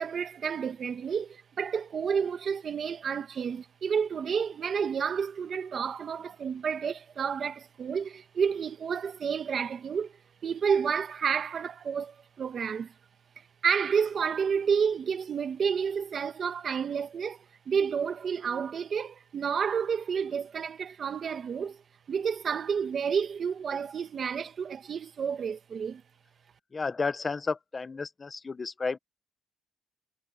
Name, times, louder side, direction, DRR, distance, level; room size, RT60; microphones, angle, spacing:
voice 1, 0.0-10.1 10.4-12.9 13.6-21.8 22.1-26.0, right 6 dB, 40° right, 1.4 m, -30 dB
voice 2, 26.7-29.0, left 4 dB, 25° left, 1.1 m, -32 dB
cardioid pair, 135°, 0 cm